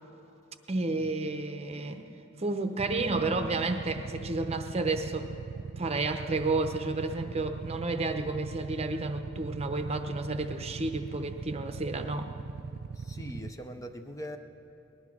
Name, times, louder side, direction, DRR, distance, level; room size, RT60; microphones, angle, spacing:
voice 1, 0.7-2.0 2.4-5.3 5.8-12.3, right 3 dB, 30° right, 7 dB, 0.8 m, -31 dB
Motorcycle / Idling, 2.8-13.5, right 5 dB, 55° right, 0.4 m, -40 dB
voice 2, 13.0-14.4, equal, 15° left, 6 dB, 0.6 m, -41 dB
20.0 x 11.5 x 6.0 m, 2.9 s
head